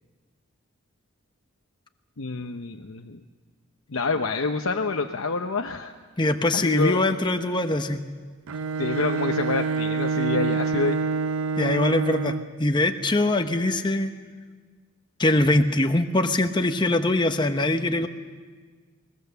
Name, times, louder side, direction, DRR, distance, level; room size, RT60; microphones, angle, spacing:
voice 1, 2.2-3.2 3.9-5.9 6.5-7.0 8.8-11.0, left 3 dB, 80° left, 4 dB, 0.8 m, -27 dB
voice 2, 6.2-8.0 11.6-14.1 15.2-18.1, left 2 dB, 20° left, 7 dB, 0.9 m, -22 dB
Bowed string instrument, 8.5-12.6, right 5 dB, 80° right, 0.5 m, -27 dB
21.5 x 20.0 x 6.9 m, 1.5 s
head